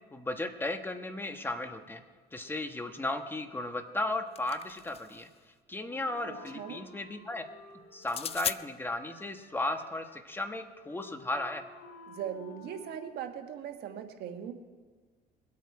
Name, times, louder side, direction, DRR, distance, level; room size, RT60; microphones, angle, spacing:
voice 1, 0.1-2.0 2.3-5.3 5.7-7.4 7.9-11.7, left 2 dB, 10° left, 6 dB, 1.2 m, -35 dB
sound 1, 4.0-5.3 8.0-8.6, left 8 dB, 35° left, 0.4 m, -37 dB
Wind instrument woodwind instrument, 5.9-13.4, left 3 dB, 70° left, 4.1 m, -53 dB
voice 2, 6.3-6.8 12.1-14.5, right 9 dB, 75° right, 6 dB, 1.4 m, -40 dB
22.0 x 8.5 x 4.9 m, 1.5 s
cardioid pair, 110°, 17 cm